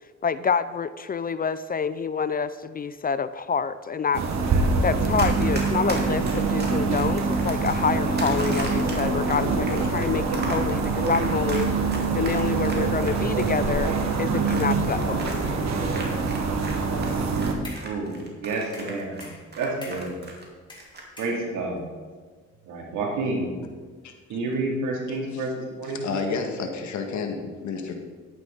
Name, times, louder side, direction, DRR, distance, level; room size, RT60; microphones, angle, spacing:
voice 1, 0.2-4.2 4.8-11.7 12.1-13.9 14.2-15.7, left 6 dB, 30° left, 14 dB, 0.4 m, -27 dB
sound 1, 4.1-17.5, right 4 dB, 65° right, 1.5 m, -24 dB
Run, 5.1-16.8 17.0-20.4 20.7-21.0, right 2 dB, 35° right, 2.4 m, -37 dB
sound 2, 17.3-18.0 18.7-20.2 20.7-21.8, left 2 dB, 15° left, 3.3 m, -45 dB
voice 2, 17.8-19.2 19.6-20.1 21.2-21.8 22.7-23.5 24.3-26.0, right 2 dB, 80° right, -1 dB, 2.7 m, -29 dB
voice 3, 25.1-25.4 25.9-27.9, left 4 dB, 70° left, 4 dB, 1.6 m, -31 dB
11.0 x 9.4 x 4.0 m, 1.5 s
cardioid pair, 90°, 30 cm